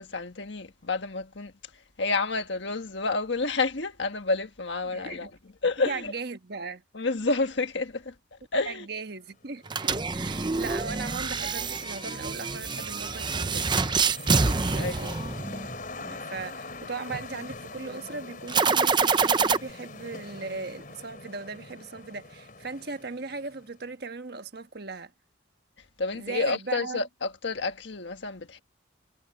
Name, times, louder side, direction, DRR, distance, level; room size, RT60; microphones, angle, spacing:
voice 1, 0.0-1.5 2.0-5.3 5.6-6.1 6.9-8.9 14.2-15.1 26.0-28.6, left 3 dB, 70° left, 1.5 m, -30 dB
voice 2, 4.8-5.3 5.8-6.8 8.7-13.7 14.6-15.1 16.0-25.1 26.1-27.0, right 4 dB, 55° right, 1.4 m, -38 dB
sound 1, 9.3-23.8, left 3 dB, 45° left, 4.0 m, -44 dB
sound 2, 9.7-15.8 18.5-19.6, right 4 dB, 25° right, 0.7 m, -26 dB
head